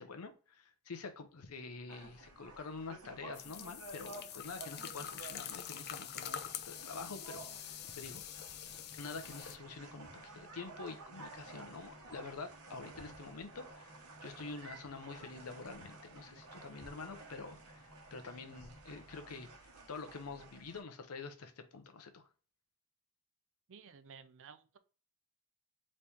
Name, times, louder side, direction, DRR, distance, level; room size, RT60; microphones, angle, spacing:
voice 1, 0.0-8.2 8.9-22.3, left 4 dB, 85° left, 0.7 m, -47 dB
sound 1, 1.9-20.8, right 3 dB, 80° right, 1.0 m, -53 dB
sound 2, 3.3-9.6, left 9 dB, 50° left, 0.5 m, -45 dB
sound 3, 4.5-19.6, left 1 dB, 20° left, 0.9 m, -62 dB
voice 2, 23.7-24.8, right 6 dB, 60° right, 0.5 m, -55 dB
4.2 x 3.2 x 3.4 m
head